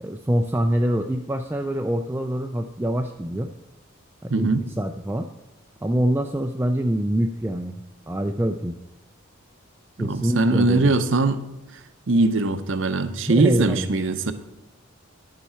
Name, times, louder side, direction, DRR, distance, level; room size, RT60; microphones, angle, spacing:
voice 1, 0.0-3.5 4.2-5.3 5.8-8.8 10.0-10.9 13.3-13.9, right 1 dB, 10° right, 4 dB, 0.3 m, -25 dB
voice 2, 4.3-4.6 10.0-11.4 12.1-14.3, right 3 dB, 60° right, 10 dB, 0.7 m, -21 dB
10.5 x 7.2 x 4.3 m, 0.99 s
head